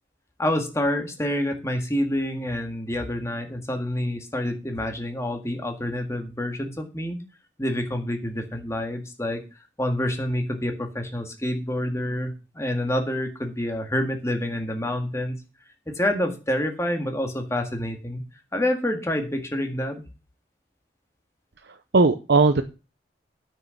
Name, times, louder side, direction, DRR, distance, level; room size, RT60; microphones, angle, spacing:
voice 1, 0.4-7.2 7.6-9.4 9.8-15.4 15.9-18.2 18.5-20.0, left 1 dB, 15° left, 4 dB, 1.9 m, -27 dB
voice 2, 21.6-22.6, right 3 dB, 65° right, 8 dB, 0.7 m, -19 dB
9.3 x 6.5 x 7.1 m, 0.31 s
head